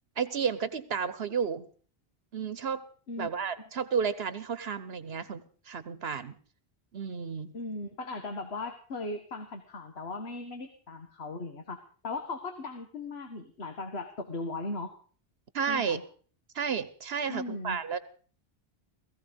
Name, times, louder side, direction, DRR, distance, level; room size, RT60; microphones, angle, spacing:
voice 1, 0.2-1.7 2.3-2.8 3.2-6.3 6.9-7.5 15.5-16.0 16.5-18.0, right 6 dB, 75° right, 14 dB, 1.2 m, -32 dB
voice 2, 7.5-14.9 15.7-16.0 17.3-17.8, left 2 dB, 80° left, 6 dB, 1.8 m, -38 dB
18.0 x 15.0 x 5.2 m, 0.43 s
omnidirectional pair, 1.1 m